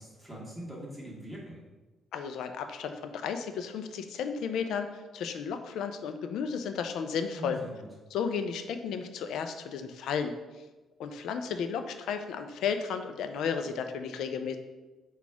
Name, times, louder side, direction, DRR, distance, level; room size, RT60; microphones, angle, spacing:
voice 1, 0.0-1.6 7.4-7.9, right 1 dB, ahead, -5 dB, 1.4 m, -42 dB
voice 2, 2.1-7.6 8.1-10.3 11.0-14.6, left 6 dB, 80° left, 8 dB, 0.4 m, -33 dB
4.1 x 2.3 x 4.5 m, 1.2 s
cardioid pair, 90°, 0 cm